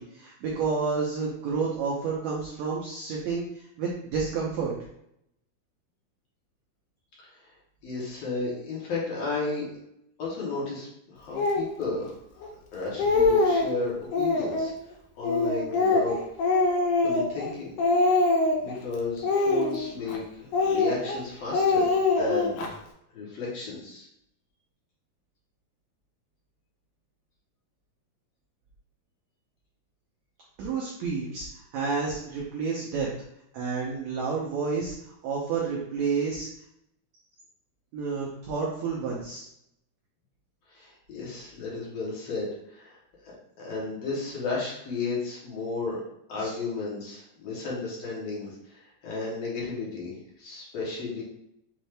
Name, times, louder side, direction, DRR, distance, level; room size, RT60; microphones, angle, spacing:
voice 1, 0.0-4.7 30.6-33.1 33.5-36.5 37.9-39.4 46.4-46.5, right 5 dB, 90° right, -3 dB, 1.5 m, -30 dB
voice 2, 7.8-9.7 10.2-12.2 12.7-14.7 15.2-16.2 17.0-17.7 18.6-21.9 22.2-22.6 23.1-24.0 40.7-43.0 43.6-46.0 46.3-51.2, left 3 dB, 60° left, -5 dB, 1.8 m, -33 dB
Speech, 11.4-11.7 12.4-12.5 12.8-13.7 14.1-14.7 15.2-17.5 17.8-18.7 19.2-20.2 20.5-21.2 21.5-22.7, left 3 dB, 80° left, 2.3 m, -24 dB
5.9 x 2.7 x 3.3 m, 0.76 s
omnidirectional pair, 4.1 m